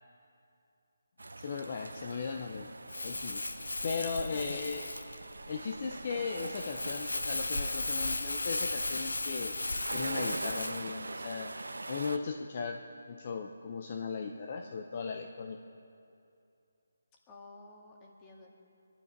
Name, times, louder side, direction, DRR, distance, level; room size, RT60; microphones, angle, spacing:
sound 1, 1.2-12.2, right 2 dB, 85° right, 0.8 m, -43 dB
voice 1, 1.4-2.7 3.0-3.4 3.8-4.9 5.5-9.7 9.9-11.5 11.9-15.7, left 5 dB, 40° left, 4 dB, 0.8 m, -37 dB
Crumpling crinkling, 2.9-10.8, left 2 dB, 90° left, 1.0 m, -36 dB
voice 2, 4.3-4.8 17.3-18.6, left 3 dB, 20° left, -1 dB, 1.9 m, -51 dB
22.0 x 11.5 x 5.2 m, 2.6 s
figure-of-eight pair, 160°, 0 cm